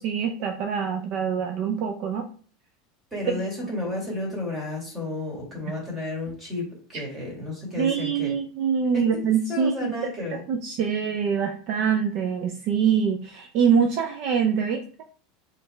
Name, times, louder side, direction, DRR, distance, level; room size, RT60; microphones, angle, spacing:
voice 1, 0.0-2.3 3.3-3.4 7.8-9.9 10.3-14.8, right 7 dB, 50° right, 4 dB, 0.5 m, -24 dB
voice 2, 3.1-8.3 8.9-9.1 9.5-10.4, left 2 dB, 10° right, -3 dB, 2.0 m, -32 dB
4.4 x 3.3 x 3.3 m, 0.44 s
supercardioid pair, 160°, 0 cm